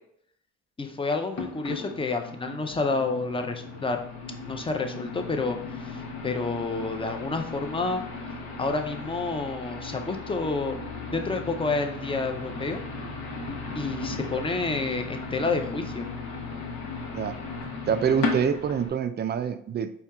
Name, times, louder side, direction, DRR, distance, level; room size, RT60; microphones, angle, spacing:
voice 1, 0.8-4.0 4.5-8.0 8.6-12.8 13.7-16.1, left 3 dB, 15° left, 5 dB, 0.6 m, -29 dB
sound 1, 1.3-18.9, left 4 dB, 80° left, 1.0 m, -36 dB
voice 2, 17.9-19.9, right 7 dB, 35° right, 10 dB, 0.4 m, -26 dB
4.4 x 2.8 x 3.4 m, 0.69 s
cardioid pair, 90°, 30 cm